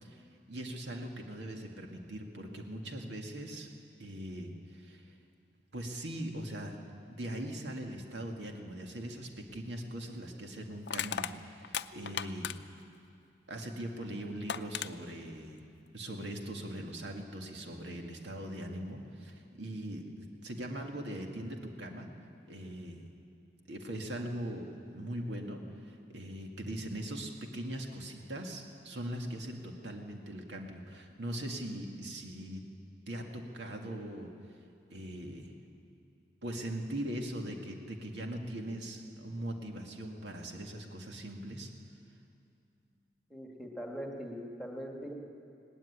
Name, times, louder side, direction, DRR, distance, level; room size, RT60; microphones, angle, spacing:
voice 1, 0.0-3.7 4.0-5.1 5.7-6.8 7.1-12.5 13.5-15.6 15.9-22.1 22.5-23.0 23.7-32.6 33.1-34.3 34.9-35.5 36.4-41.7, right 1 dB, 80° right, 2 dB, 2.0 m, -41 dB
Crushing, 9.5-9.7 10.9-12.8 14.0-14.1 14.5-14.9, left 8 dB, 70° left, 0.5 m, -36 dB
voice 2, 43.3-45.1, equal, ahead, 0 dB, 1.9 m, -41 dB
18.5 x 16.0 x 9.9 m, 2.5 s
head